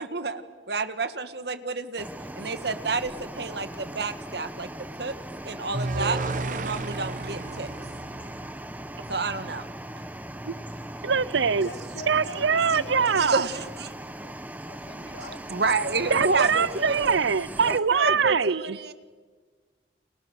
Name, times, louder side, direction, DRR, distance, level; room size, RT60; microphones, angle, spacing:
voice 1, 0.0-2.1 2.4-5.2 5.4-6.2 6.5-7.7 9.1-9.7 13.1-13.9 14.2-14.3 15.5-17.2 17.7-18.9, right 3 dB, 65° right, 1.6 m, -29 dB
sound 1, 2.0-17.8, right 1 dB, 10° right, 1.1 m, -39 dB
sound 2, 5.7-8.9, right 2 dB, 45° right, 1.1 m, -32 dB
voice 2, 11.0-11.7 12.1-13.4 16.1-18.6, right 6 dB, 85° right, 0.7 m, -23 dB
voice 3, 11.6-13.7 14.7-16.1, left 2 dB, 70° left, 2.4 m, -43 dB
29.5 x 28.5 x 6.5 m
head